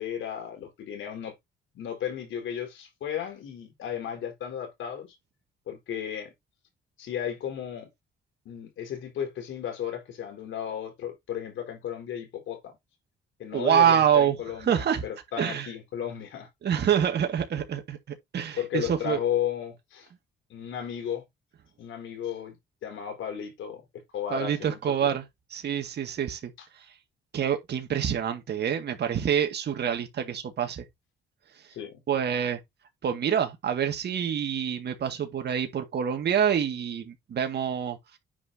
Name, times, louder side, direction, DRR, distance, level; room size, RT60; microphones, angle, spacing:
voice 1, 0.0-1.3 1.7-5.2 5.7-6.3 7.0-7.9 8.4-12.7 13.4-16.5 18.6-20.1 20.5-21.2 21.8-23.8 24.1-25.2 26.6-26.7 31.7-32.0, left 9 dB, 80° left, 4.5 m, -34 dB
voice 2, 13.5-14.4 14.6-15.0 15.4-15.7 16.6-18.0 18.3-19.2 24.3-25.2 25.5-26.9 27.3-30.8 32.1-32.6 33.0-38.2, right 8 dB, 60° right, 2.0 m, -26 dB
9.7 x 5.6 x 2.8 m
cardioid pair, 90°, 20 cm